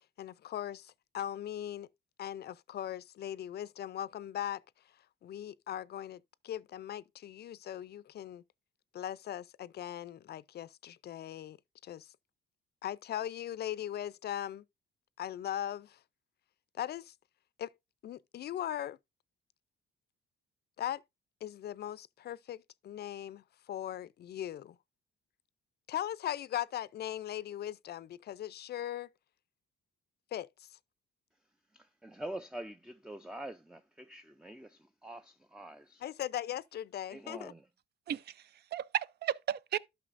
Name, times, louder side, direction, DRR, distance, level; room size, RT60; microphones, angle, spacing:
voice 1, 0.0-1.9 2.2-4.6 5.2-8.4 8.9-11.6 11.8-12.1 12.8-14.6 15.2-16.0 16.7-17.1 17.6-17.7 18.0-19.0 20.8-21.0 21.4-24.8 25.9-29.1 30.3-30.8 36.0-37.5, left 11 dB, 55° left, 0.4 m, -39 dB
voice 2, 31.7-36.0 37.1-37.6, right 1 dB, 5° right, 0.4 m, -45 dB
voice 3, 38.1-39.8, right 10 dB, 55° right, 0.5 m, -35 dB
12.0 x 5.7 x 2.5 m
cardioid pair, 90°, 20 cm